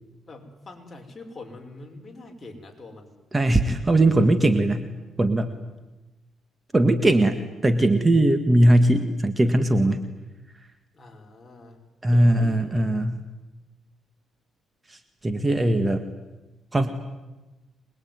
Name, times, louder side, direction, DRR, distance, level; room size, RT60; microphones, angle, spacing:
voice 1, 0.3-3.1 10.9-11.8 12.1-12.9, left 2 dB, 25° left, 2 dB, 5.7 m, -44 dB
voice 2, 3.3-4.8 5.2-5.5 6.7-10.0 12.0-13.2 14.9-16.0 16.7-16.9, right 1 dB, 20° right, 9 dB, 1.8 m, -20 dB
26.0 x 21.5 x 9.6 m, 1.1 s
cardioid pair, 90°, 0 cm